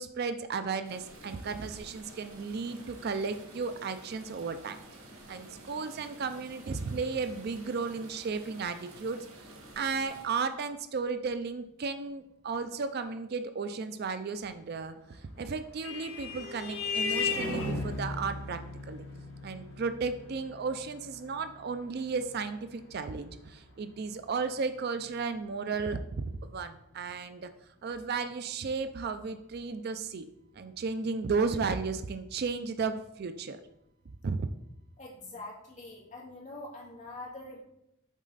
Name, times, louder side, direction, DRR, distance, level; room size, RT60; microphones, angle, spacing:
voice 1, 0.0-4.8 5.3-9.2 9.7-18.6 18.9-19.0 19.4-27.5 27.8-30.3 30.6-33.6 34.2-34.4, right 4 dB, 50° right, 10 dB, 0.4 m, -34 dB
sound 1, 0.8-10.2, right 1 dB, 90° right, 1.7 m, -51 dB
Vehicle horn car horn honking, 15.2-24.2, left 4 dB, 85° left, 1.8 m, -37 dB
voice 2, 35.0-37.6, left 2 dB, 35° left, -3 dB, 1.8 m, -44 dB
7.2 x 4.1 x 4.0 m, 0.82 s
head